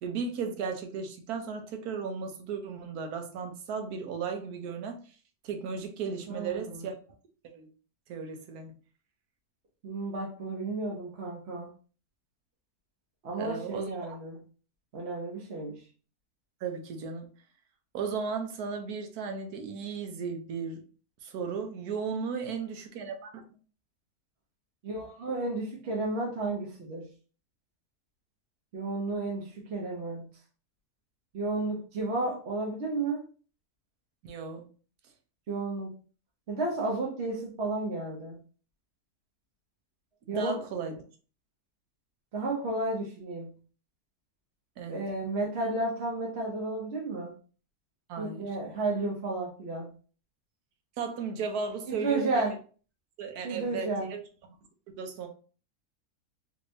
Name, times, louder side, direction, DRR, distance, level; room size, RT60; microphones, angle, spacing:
voice 1, 0.0-5.0 5.4-6.9 7.5-7.7 8.1-8.7 13.4-13.9 16.6-17.3 17.9-20.8 21.2-23.4 34.2-34.6 40.3-41.0 44.8-45.0 48.1-48.5 51.0-52.4 53.2-54.2 55.0-55.3, right 5 dB, 75° right, 5 dB, 1.2 m, -35 dB
voice 2, 6.3-6.9 9.8-11.7 13.2-14.4 14.9-15.7 24.8-27.1 28.7-30.3 31.3-33.2 35.5-35.9 36.5-38.4 40.3-40.6 42.3-43.5 44.9-47.3 48.2-49.9 51.9-52.5 53.4-54.1, right 2 dB, 50° right, -2 dB, 1.0 m, -32 dB
3.3 x 3.2 x 2.6 m, 0.39 s
omnidirectional pair, 1.7 m